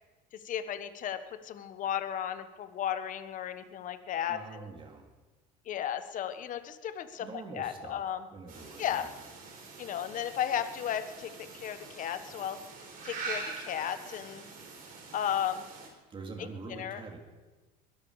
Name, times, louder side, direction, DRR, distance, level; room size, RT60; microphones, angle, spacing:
voice 1, 0.3-4.7 5.6-8.3 8.8-9.1 9.8-12.6 13.0-14.4 15.1-15.6 16.7-17.0, left 9 dB, 45° left, 10 dB, 1.3 m, -34 dB
voice 2, 4.3-5.0 7.2-8.0 8.3-9.1 16.1-17.2, right 4 dB, 25° right, 2 dB, 2.9 m, -44 dB
sound 1, 8.5-15.9, right 4 dB, 50° right, 4.8 m, -44 dB
22.5 x 12.5 x 4.9 m, 1.2 s
supercardioid pair, 115°, 19 cm